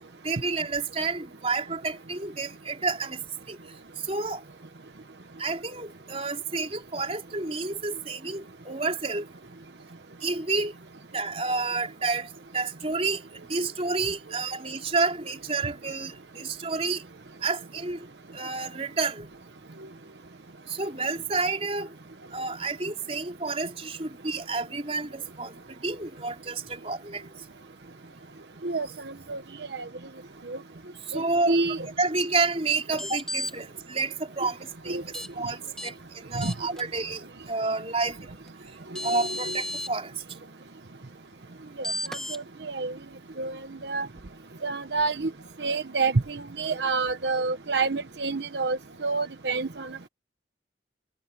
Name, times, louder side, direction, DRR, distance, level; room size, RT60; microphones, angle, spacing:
voice 1, 0.2-3.2 3.5-3.6 4.1-4.4 5.4-9.2 10.2-10.7 11.1-13.2 13.5-17.0 17.4-18.0 18.3-19.3 20.7-21.9 22.3-27.2 31.1-31.6 32.0-35.0 35.3-38.4 39.0-40.1, right 3 dB, 35° right, 4.6 m, -30 dB
voice 2, 31.1-31.9 34.9-35.0 36.4-36.5 39.1-39.6 41.8-42.9 43.4-44.1 44.6-45.3 45.6-50.1, right 3 dB, 80° right, 1.0 m, -28 dB
sound 1, 32.9-33.5 35.1-35.3 35.8-35.9 36.4-36.8 38.5-38.6 38.9-39.9 41.8-42.4, left 1 dB, 5° left, 1.6 m, -33 dB
head